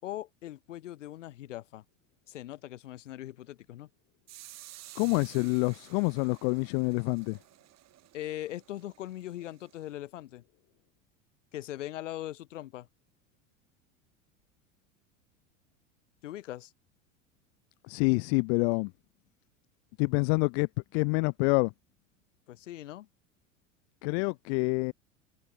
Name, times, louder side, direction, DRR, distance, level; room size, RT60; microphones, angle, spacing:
voice 1, 0.0-1.8 2.3-3.9 8.1-10.4 11.5-12.9 16.2-16.7 22.5-23.1, left 14 dB, 70° left, 6.2 m, -40 dB
sound 1, 4.3-9.9, right 15 dB, 45° right, 5.9 m, -53 dB
voice 2, 4.9-7.4 17.9-18.9 20.0-21.7 24.0-24.9, left 35 dB, 55° left, 1.5 m, -27 dB
figure-of-eight pair, 80°, 38 cm